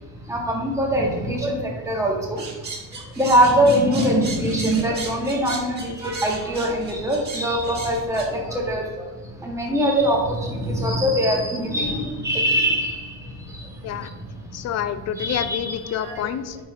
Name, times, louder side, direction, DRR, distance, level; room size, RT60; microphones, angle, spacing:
voice 1, 0.3-2.4 3.2-8.8 9.4-13.1 15.2-16.2, equal, 10° right, -2 dB, 1.1 m, -22 dB
sound 1, 2.4-8.3, right 3 dB, 25° right, 1.4 m, -35 dB
voice 2, 14.5-16.6, left 9 dB, 45° left, 11 dB, 0.4 m, -28 dB
8.7 x 4.6 x 2.5 m, 1.2 s
cardioid pair, 150°, 38 cm